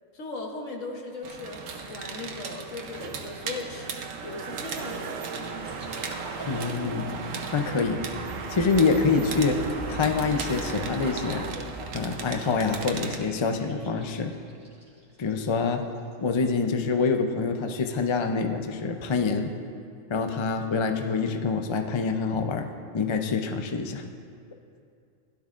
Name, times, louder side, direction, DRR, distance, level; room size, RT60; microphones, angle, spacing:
voice 1, 0.1-3.9 4.2-5.4, left 3 dB, 70° left, 1 dB, 1.5 m, -38 dB
sound 1, 1.2-13.2, right 5 dB, 75° right, 1.2 m, -36 dB
sound 2, 5.6-15.5 15.9-16.1, equal, 20° right, 2.1 m, -41 dB
voice 2, 6.5-7.1 7.5-8.0 8.5-9.6 9.9-11.4 11.9-14.3 15.2-15.8 16.2-19.5 20.1-22.7 22.9-24.0, left 4 dB, 45° left, 5 dB, 0.4 m, -26 dB
16.0 x 11.5 x 2.5 m, 2.4 s
omnidirectional pair, 1.4 m